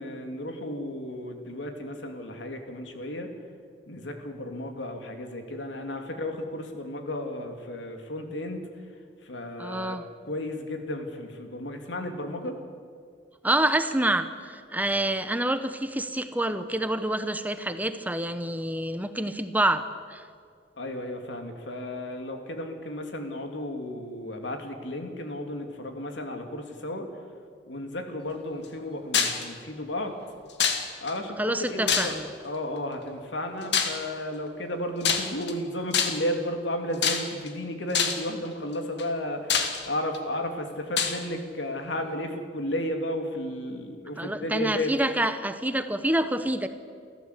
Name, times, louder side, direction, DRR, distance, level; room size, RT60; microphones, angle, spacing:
voice 1, 0.0-3.3 3.9-8.6 9.2-10.0 10.2-12.6 20.8-27.1 27.7-30.1 31.0-45.0, left 1 dB, 85° left, 4 dB, 2.9 m, -33 dB
voice 2, 9.6-10.0 13.4-19.8 20.1-20.2 31.4-32.3 44.2-46.7, right 1 dB, 10° right, 10 dB, 0.9 m, -27 dB
sound 1, 29.1-29.4 30.6-31.1 31.9-32.4 33.7-34.0 35.0-35.5 35.9-36.3 37.0-37.5 37.9-38.3 39.0-39.1 39.5-40.2 41.0-41.2, left 7 dB, 65° left, 2.3 m, -25 dB
29.0 x 14.0 x 8.3 m, 2.1 s
head